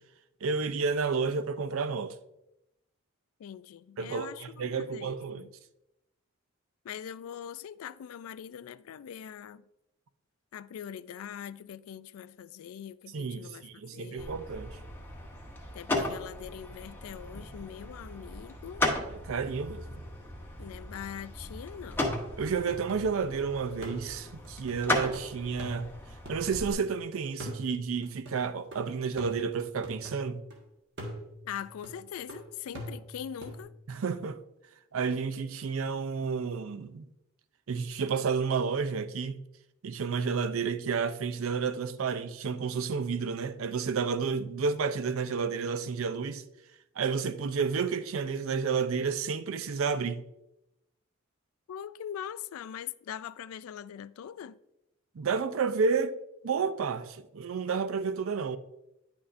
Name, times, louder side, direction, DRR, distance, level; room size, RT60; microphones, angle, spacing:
voice 1, 0.4-2.1 4.0-5.5 13.1-14.8 19.1-19.9 22.4-25.9 26.3-30.4 33.9-34.4 34.9-37.1 37.7-39.4 39.8-46.4 47.0-50.2 55.2-56.1 56.4-58.6, right 5 dB, 80° right, 0.5 m, -31 dB
voice 2, 3.4-5.5 6.8-9.6 10.5-14.4 15.7-18.9 20.6-22.1 31.4-33.7 51.7-54.6, left 9 dB, 85° left, 0.3 m, -42 dB
sound 1, 14.2-26.7, left 1 dB, 10° left, 0.8 m, -36 dB
sound 2, 22.0-23.4 23.8-27.0 27.4-30.6 31.0-33.6, equal, 55° right, 1.4 m, -44 dB
9.6 x 6.1 x 2.6 m
head